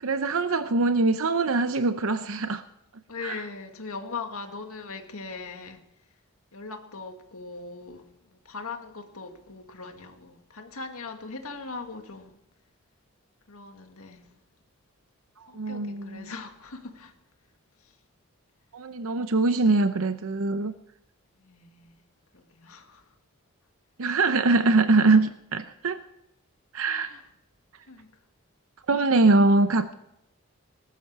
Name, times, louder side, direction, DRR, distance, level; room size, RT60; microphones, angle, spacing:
voice 1, 0.0-2.6 3.2-3.4 15.4-16.3 18.7-20.7 24.0-26.0 26.7-27.1 28.9-29.9, right 3 dB, 75° right, 0.7 m, -23 dB
voice 2, 3.1-5.8 6.5-12.4 13.5-14.3 15.5-17.1 17.8-17.9 21.4-22.0 22.3-23.1 26.9-27.2 27.8-28.1, left 4 dB, 85° left, 2.1 m, -40 dB
19.5 x 12.5 x 4.8 m
head